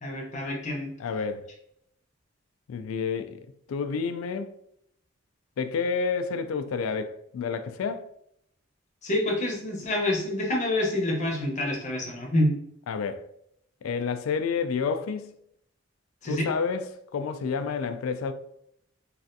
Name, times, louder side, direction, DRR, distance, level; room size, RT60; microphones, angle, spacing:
voice 1, 0.0-0.9 9.0-12.5 16.2-16.5, left 1 dB, 35° left, 0.8 m, -27 dB
voice 2, 1.0-1.5 2.7-3.4 3.7-4.5 5.6-8.1 12.9-13.3 13.8-15.3 16.2-18.3, left 5 dB, 80° left, 0.3 m, -29 dB
3.2 x 2.4 x 2.6 m
head